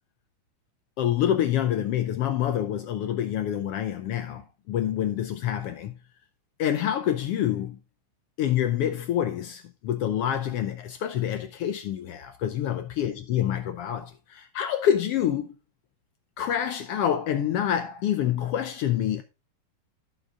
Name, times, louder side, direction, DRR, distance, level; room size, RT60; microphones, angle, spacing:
voice 1, 1.0-6.0 6.6-7.8 8.4-15.5 16.4-19.2, left 10 dB, 75° left, 1.4 m, -27 dB
15.0 x 6.3 x 2.4 m
omnidirectional pair, 3.3 m